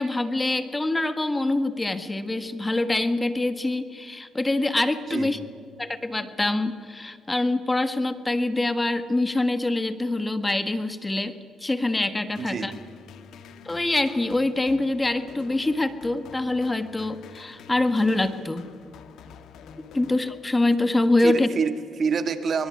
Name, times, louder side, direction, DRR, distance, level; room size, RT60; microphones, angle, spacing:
voice 1, 0.0-5.4 5.8-12.7 13.6-18.7 19.9-21.5, left 2 dB, 15° left, 11 dB, 1.5 m, -25 dB
sound 1, 12.4-20.9, left 6 dB, 80° left, 1.8 m, -47 dB
voice 2, 12.4-12.7 21.2-22.7, right 5 dB, 50° right, 9 dB, 2.2 m, -26 dB
23.5 x 23.0 x 9.6 m, 2.4 s
cardioid pair, 90°, 0 cm